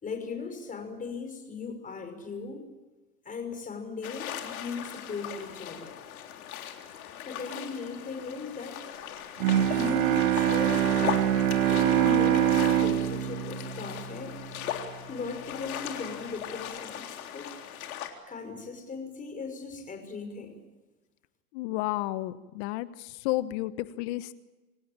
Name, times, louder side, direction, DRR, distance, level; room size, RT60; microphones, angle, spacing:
voice 1, 0.0-2.6 3.2-5.9 7.3-8.8 9.1-9.3 9.7-11.2 11.7-14.4 15.1-17.5 18.3-20.6, left 5 dB, 20° left, 6 dB, 5.8 m, -38 dB
sound 1, 4.0-18.1, left 10 dB, 70° left, 3.7 m, -38 dB
Bowed string instrument, 9.4-14.7, right 11 dB, 60° right, 2.5 m, -25 dB
voice 2, 21.5-24.3, left 17 dB, 50° left, 14 dB, 1.3 m, -32 dB
27.5 x 16.5 x 8.9 m, 1.1 s
hypercardioid pair, 110°, 44 cm